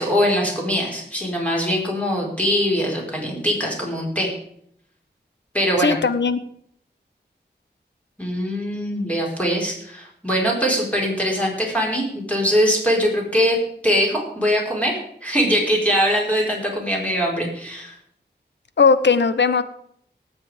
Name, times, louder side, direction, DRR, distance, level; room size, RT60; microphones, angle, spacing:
voice 1, 0.0-4.3 5.5-6.0 8.2-13.6 13.8-17.9, equal, 5° left, -2 dB, 4.5 m, -22 dB
voice 2, 5.8-6.4 18.8-19.6, left 5 dB, 85° left, 13 dB, 0.8 m, -17 dB
18.5 x 7.5 x 5.0 m, 0.69 s
wide cardioid pair, 60°, 18 cm